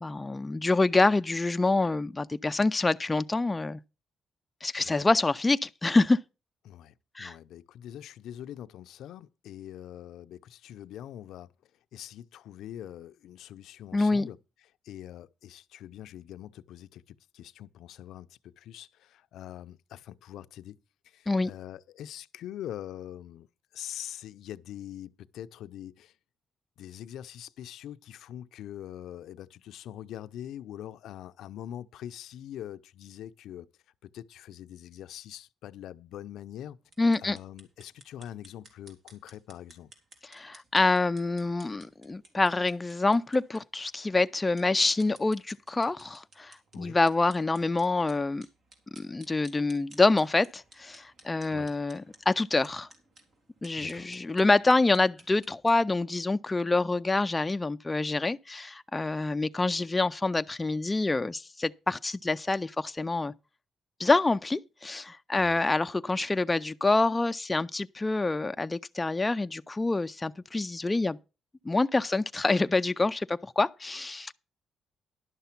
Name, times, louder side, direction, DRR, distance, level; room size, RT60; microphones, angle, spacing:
voice 1, 0.0-3.8 4.6-6.2 7.2-7.4 13.9-14.3 21.3-21.5 37.0-37.4 40.3-48.5 49.0-52.9 53.6-63.3 64.0-71.2 71.6-74.3, left 3 dB, 20° left, 0.4 m, -26 dB
voice 2, 4.8-5.1 6.6-11.5 11.9-14.4 14.8-20.8 21.0-23.5 23.7-26.1 26.8-33.7 34.0-36.8 37.2-39.9 46.7-47.0 51.5-51.7 53.8-54.1 65.4-65.6, left 11 dB, 80° left, 0.5 m, -43 dB
sound 1, 36.8-55.8, right 2 dB, 55° right, 3.2 m, -57 dB
11.0 x 6.7 x 5.9 m
cardioid pair, 90°, 0 cm